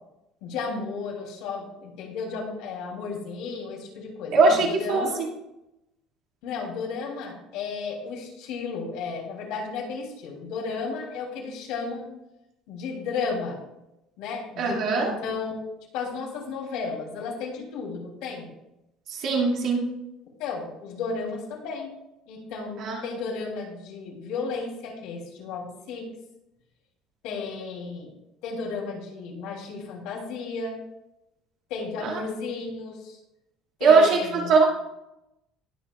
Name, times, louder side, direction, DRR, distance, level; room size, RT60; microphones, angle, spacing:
voice 1, 0.4-5.2 6.4-12.1 12.7-13.6 14.2-15.6 15.9-18.5 20.4-22.0 22.3-26.1 27.2-28.1 28.4-30.8 31.7-33.2 33.8-34.5, left 4 dB, 70° left, -1 dB, 3.2 m, -33 dB
voice 2, 4.3-5.3 14.6-15.1 19.1-19.9 22.8-23.0 32.0-32.2 33.8-34.6, right 4 dB, 45° right, -1 dB, 2.4 m, -21 dB
19.5 x 7.4 x 2.4 m, 0.90 s
cardioid pair, 175°, 0 cm